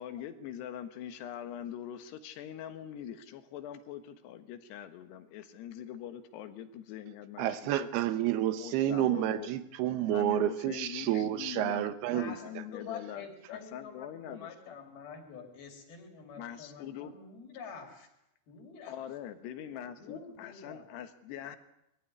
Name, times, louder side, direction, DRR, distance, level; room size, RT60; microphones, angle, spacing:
voice 1, 0.0-7.9 8.5-9.5 10.1-14.8 16.4-17.1 18.9-21.6, left 10 dB, 90° left, 10 dB, 3.5 m, -43 dB
voice 2, 7.4-12.3, right 12 dB, 80° right, 13 dB, 3.0 m, -30 dB
voice 3, 12.0-18.1 18.5-19.1 19.8-20.8, left 6 dB, 65° left, 4 dB, 5.0 m, -47 dB
21.5 x 15.0 x 9.6 m, 0.85 s
omnidirectional pair, 4.7 m